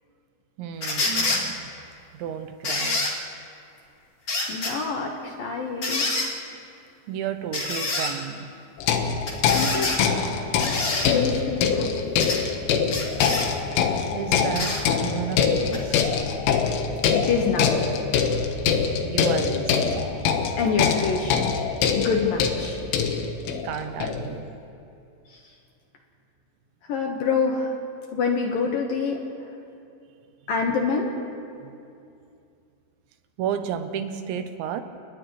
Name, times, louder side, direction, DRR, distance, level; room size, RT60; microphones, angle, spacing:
voice 1, 0.6-1.7 2.1-3.1 7.1-8.5 14.1-16.0 19.0-20.3 23.6-24.6 31.6-31.7 33.4-34.8, right 8 dB, 80° right, 8 dB, 3.1 m, -32 dB
sound 1, 0.8-1.4 2.6-3.1 4.3-4.7 5.8-6.3 7.5-8.1 9.3-10.0 10.6-11.1 12.2-12.4 12.9-13.5 14.5-14.8 15.7-15.8, left 2 dB, 35° left, 3.0 m, -26 dB
voice 2, 4.5-6.1 9.5-10.1 11.1-12.4 17.1-17.8 20.6-21.6 22.0-22.8 25.3-25.4 26.8-27.8 28.1-29.2 30.5-31.1, left 5 dB, 65° left, 1 dB, 2.5 m, -26 dB
sound 2, 8.8-24.4, left 6 dB, 90° left, 3.8 m, -24 dB
30.0 x 29.0 x 3.2 m, 2.5 s
omnidirectional pair, 5.4 m